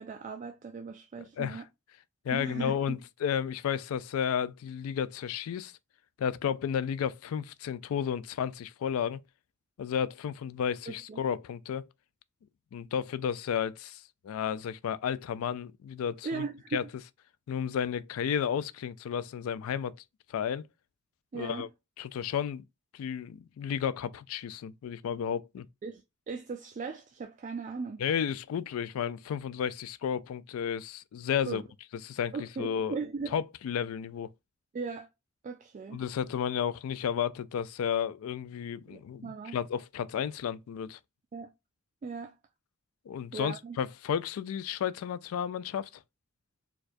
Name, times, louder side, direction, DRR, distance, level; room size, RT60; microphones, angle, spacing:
voice 1, 0.0-1.7 2.3-3.0 10.9-11.2 16.2-16.8 21.3-21.7 25.8-28.0 31.5-31.6 32.3-33.4 34.7-35.1 35.4-36.0 38.9-39.6 41.3-41.5 42.0-42.3 43.3-43.8, right 4 dB, 35° right, 0.3 m, -38 dB
voice 2, 1.2-1.6 2.2-5.7 6.2-9.2 9.8-11.8 12.7-16.4 16.7-16.8 17.5-20.0 20.3-20.7 21.3-21.7 22.0-22.6 22.9-25.7 28.0-31.6 32.0-33.0 33.3-34.3 35.9-41.0 43.1-45.9, left 8 dB, 80° left, 0.3 m, -32 dB
4.4 x 2.3 x 2.5 m
head